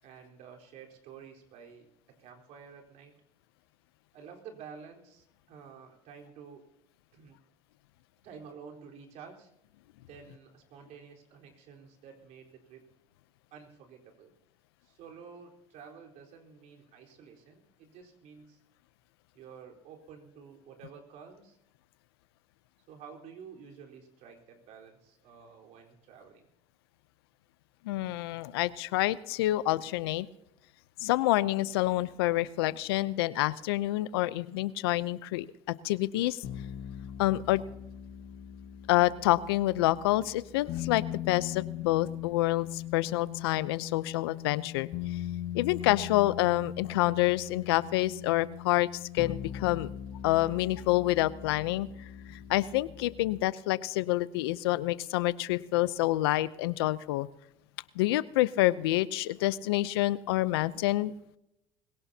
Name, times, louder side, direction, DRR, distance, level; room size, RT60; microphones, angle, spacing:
voice 1, 0.0-3.1 4.1-6.6 7.1-7.4 8.2-9.5 10.1-12.8 13.5-14.3 14.8-18.6 19.3-21.6 22.9-26.5, right 6 dB, 65° right, 1 dB, 4.2 m, -50 dB
voice 2, 27.8-30.3 31.0-35.5 35.8-36.4 37.2-37.6 38.9-44.9 45.5-49.9 50.2-51.9 52.3-57.3 58.0-61.1, left 17 dB, 90° left, 17 dB, 0.6 m, -27 dB
sound 1, 36.4-53.4, left 11 dB, 75° left, 1.5 m, -40 dB
21.5 x 17.5 x 2.8 m, 0.85 s
supercardioid pair, 80°, 12 cm